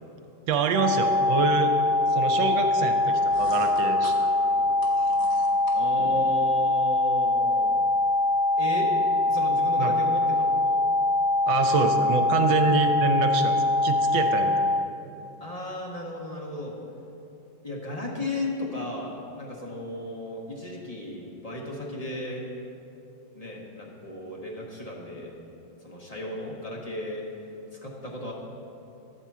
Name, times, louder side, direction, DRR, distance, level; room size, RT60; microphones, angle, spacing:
voice 1, 0.5-1.7 2.1-4.1 9.8-9.9 11.5-13.6 13.8-14.5, right 4 dB, 75° right, 6 dB, 1.3 m, -26 dB
sound 1, 0.7-14.8, left 2 dB, 5° right, 0.6 m, -23 dB
sound 2, 3.0-6.3, left 2 dB, 80° left, 1.9 m, -44 dB
voice 2, 5.7-7.7 8.6-8.9 9.3-10.8 15.4-16.8 17.6-22.4 23.3-25.3 25.8-27.3 27.7-28.3, left 1 dB, 35° left, -3 dB, 0.6 m, -35 dB
10.5 x 4.4 x 7.2 m, 2.8 s
omnidirectional pair, 2.2 m